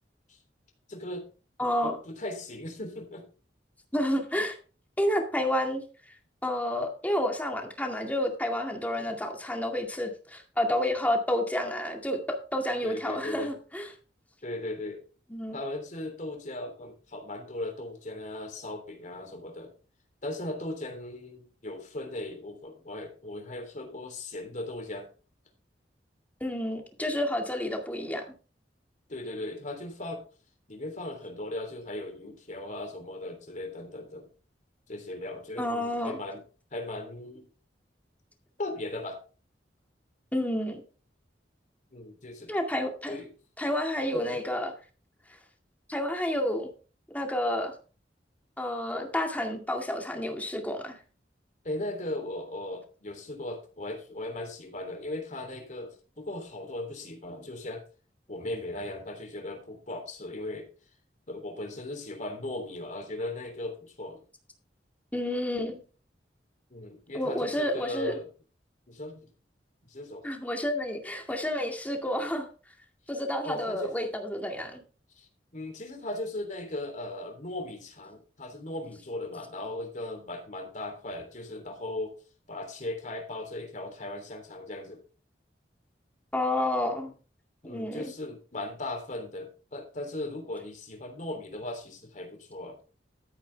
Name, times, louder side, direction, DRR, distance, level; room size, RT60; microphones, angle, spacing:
voice 1, 0.9-1.3 1.6-3.3 9.0-9.1 12.8-13.5 14.4-15.1 15.5-19.7 20.2-25.1 29.1-30.2 30.7-34.3 34.9-36.4 36.7-37.5 38.6-39.2 41.9-42.5 43.1-43.3 44.1-44.4 51.6-57.8 58.3-60.7 61.3-64.2 66.7-68.3 68.9-69.3 69.9-70.2 73.4-73.9 75.1-82.1 82.5-85.0 87.6-92.8, left 1 dB, 45° left, 4 dB, 3.3 m, -38 dB
voice 2, 1.6-2.0 3.9-4.6 5.0-5.8 6.4-13.9 15.3-15.6 26.4-28.2 35.6-36.2 40.3-40.8 42.5-43.2 43.6-44.7 45.9-46.7 47.1-47.7 48.6-51.0 65.1-65.8 67.1-68.1 70.2-72.5 73.1-74.8 86.3-87.1 87.6-88.1, left 1 dB, 10° left, 3 dB, 2.1 m, -30 dB
13.5 x 9.1 x 3.5 m, 0.37 s
head